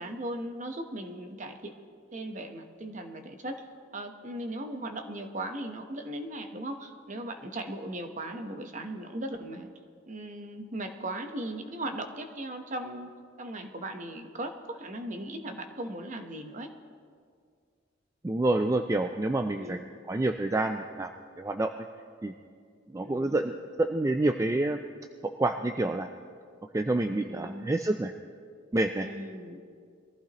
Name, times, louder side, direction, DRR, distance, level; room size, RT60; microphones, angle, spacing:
voice 1, 0.0-1.7 2.1-3.6 3.9-9.7 10.1-13.1 13.4-16.7 19.5-19.9 23.0-23.4 27.2-27.7 29.0-29.6, right 1 dB, 40° right, 6 dB, 1.0 m, -38 dB
voice 2, 18.2-19.8 20.1-21.1 21.4-21.7 22.2-22.3 22.9-24.8 25.4-26.1 26.7-28.1 28.7-29.1, right 2 dB, 15° right, 6 dB, 0.3 m, -28 dB
22.5 x 14.5 x 3.0 m, 2.1 s
head